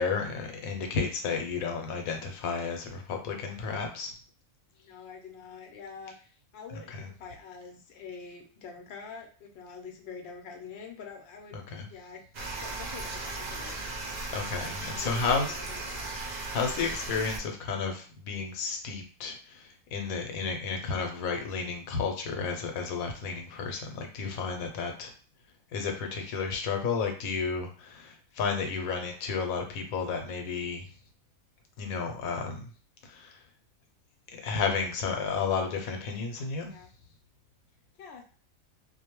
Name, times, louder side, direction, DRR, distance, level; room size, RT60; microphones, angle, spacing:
voice 1, 0.0-4.1 6.9-7.0 11.7-11.9 14.3-15.6 16.5-25.1 25.7-30.9 31.8-32.6 33.1-33.3 34.4-36.7, left 5 dB, 80° left, 3 dB, 1.0 m, -32 dB
voice 2, 4.8-6.3 6.5-12.2 12.6-13.8 14.9-16.1 36.7-36.9 38.0-38.2, left 5 dB, 60° left, 2 dB, 0.7 m, -46 dB
sound 1, 12.3-17.4, right 2 dB, 60° right, 0.4 m, -37 dB
2.5 x 2.2 x 2.9 m, 0.39 s
omnidirectional pair, 1.5 m